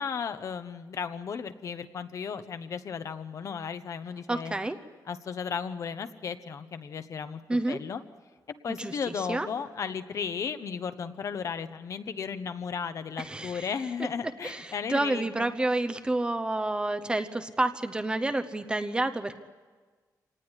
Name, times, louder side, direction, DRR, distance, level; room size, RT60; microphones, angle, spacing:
voice 1, 0.0-4.5 5.1-8.0 8.6-15.5, left 6 dB, 50° left, 10 dB, 1.1 m, -35 dB
voice 2, 4.3-4.8 7.5-7.8 8.7-9.5 13.2-13.7 14.4-19.4, right 2 dB, 15° right, 8 dB, 0.9 m, -29 dB
26.5 x 19.0 x 9.9 m, 1.4 s
wide cardioid pair, 180°, 7 cm